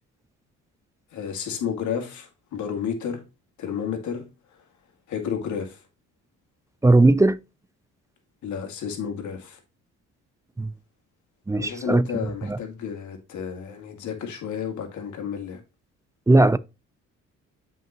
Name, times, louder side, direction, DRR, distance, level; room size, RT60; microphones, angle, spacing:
voice 1, 1.1-3.2 3.6-4.3 5.1-5.8 8.4-9.6 11.5-15.6, left 7 dB, 75° left, 2.1 m, -31 dB
voice 2, 6.8-7.4 10.6-10.7 11.5-12.0 12.4-12.6 16.3-16.6, right 2 dB, 10° right, 0.4 m, -17 dB
7.7 x 5.3 x 2.9 m
cardioid pair, 90°, 30 cm